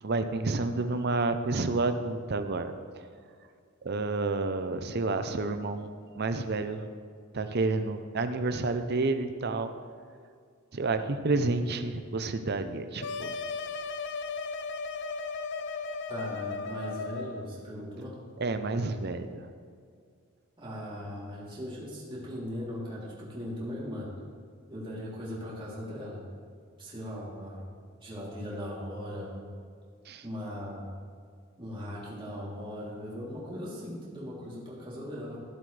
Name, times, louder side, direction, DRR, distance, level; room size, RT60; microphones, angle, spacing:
voice 1, 0.0-3.1 3.8-6.9 7.3-9.7 10.7-13.4 18.4-19.5 30.0-30.2, right 3 dB, 50° right, 9 dB, 0.7 m, -30 dB
sound 1, 13.0-17.5, left 4 dB, 55° left, 0.5 m, -36 dB
voice 2, 16.1-18.2 20.6-24.1 24.7-26.2 26.8-27.7 28.0-29.5 30.2-30.9 31.6-35.4, equal, 25° right, -7 dB, 3.1 m, -39 dB
15.5 x 8.0 x 3.3 m, 2.2 s
head